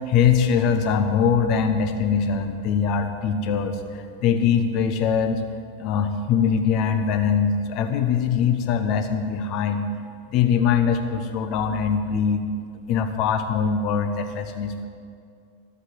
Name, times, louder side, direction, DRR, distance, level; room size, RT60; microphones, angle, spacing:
voice 1, 0.1-5.4 5.8-9.9 10.3-12.4 12.9-14.9, left 7 dB, 40° left, 7 dB, 1.3 m, -22 dB
14.5 x 8.2 x 8.0 m, 2.3 s
figure-of-eight pair, 90°, 0 cm